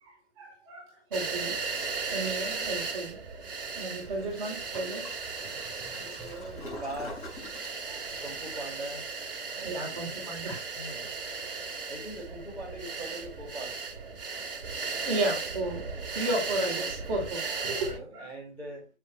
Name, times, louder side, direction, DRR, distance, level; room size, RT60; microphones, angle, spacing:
voice 1, 0.0-1.6 2.1-3.2 3.7-5.1 7.9-8.0 9.6-10.6 15.0-15.8 16.1-18.3, right 2 dB, 30° right, -1 dB, 3.6 m, -33 dB
sound 1, 1.1-18.0, right 4 dB, 55° right, 2.2 m, -36 dB
Toilet flush, 4.0-9.3, left 1 dB, 25° left, 5.2 m, -47 dB
voice 2, 5.8-7.3 8.1-9.1 9.4-10.3 10.7-11.1 11.8-13.8 17.8-18.9, right 1 dB, 5° left, -5 dB, 4.1 m, -41 dB
8.0 x 7.5 x 3.3 m, 0.27 s
figure-of-eight pair, 140°, 34 cm